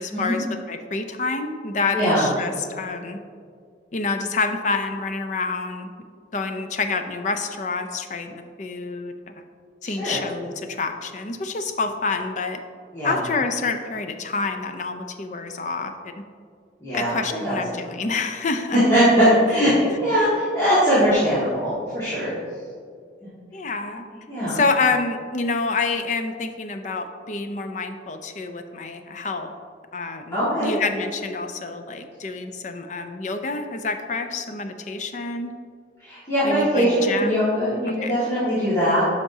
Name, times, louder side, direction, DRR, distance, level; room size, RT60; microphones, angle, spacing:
voice 1, 0.0-3.2 3.9-5.9 6.3-9.3 9.8-12.6 13.0-16.1 16.9-18.8 23.5-24.1 24.5-29.5 29.9-35.5 36.4-37.4 37.9-38.1, left 3 dB, 40° left, 7 dB, 0.5 m, -27 dB
voice 2, 1.9-2.3 9.8-10.2 12.9-13.2 16.8-17.2 17.4-17.6 18.7-22.3 24.3-24.6 30.3-30.8 36.0-39.0, equal, 20° left, -14 dB, 1.9 m, -21 dB
9.9 x 5.8 x 2.8 m, 2.2 s
head